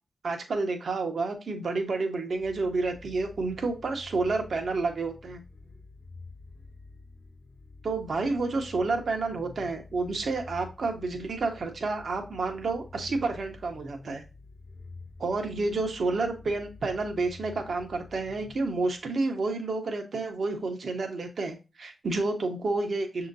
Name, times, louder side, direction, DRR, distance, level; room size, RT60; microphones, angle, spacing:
voice 1, 0.2-5.4 7.8-14.2 15.2-23.3, right 3 dB, 65° right, 4 dB, 1.0 m, -30 dB
sound 1, 2.3-19.2, left 3 dB, 40° left, 0.6 m, -48 dB
6.2 x 2.9 x 2.6 m, 0.28 s
supercardioid pair, 45°, 0 cm